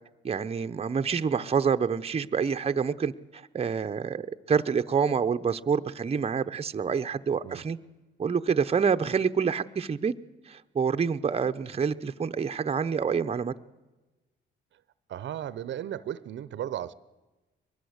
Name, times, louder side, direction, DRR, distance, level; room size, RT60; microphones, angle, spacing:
voice 1, 0.2-7.8 8.2-10.1 10.5-13.5, right 6 dB, 30° right, 8 dB, 0.8 m, -27 dB
voice 2, 15.1-16.9, right 11 dB, 65° right, 17 dB, 0.8 m, -35 dB
22.5 x 20.0 x 8.1 m, 1.1 s
cardioid pair, 90°, 20 cm